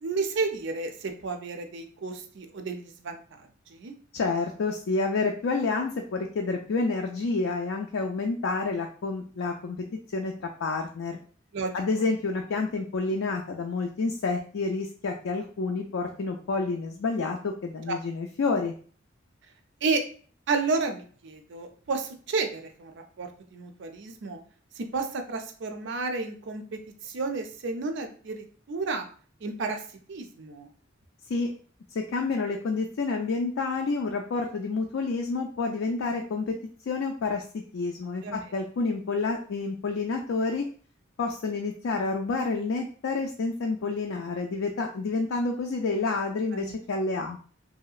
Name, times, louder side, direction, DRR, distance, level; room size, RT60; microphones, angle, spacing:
voice 1, 0.0-3.9 11.5-11.7 19.8-20.0 20.5-22.9 23.2-24.4 24.8-29.1 29.4-29.8 30.1-30.7 38.2-38.4 46.5-46.7, right 4 dB, 65° right, 6 dB, 0.5 m, -31 dB
voice 2, 4.1-9.9 10.1-11.2 11.7-18.7 31.3-31.5 31.9-36.6 36.9-40.7 41.2-47.4, left 3 dB, 85° left, 2 dB, 0.4 m, -29 dB
3.0 x 2.7 x 2.4 m, 0.43 s
head